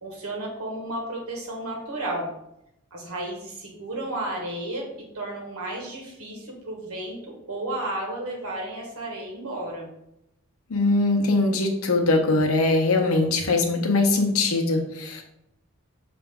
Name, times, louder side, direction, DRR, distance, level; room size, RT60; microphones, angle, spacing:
voice 1, 0.0-2.3 2.9-4.9 5.1-9.9, right 1 dB, 85° right, 0 dB, 1.4 m, -33 dB
voice 2, 10.7-15.2, left 2 dB, 80° left, 3 dB, 0.8 m, -22 dB
5.9 x 2.5 x 3.5 m, 0.82 s
head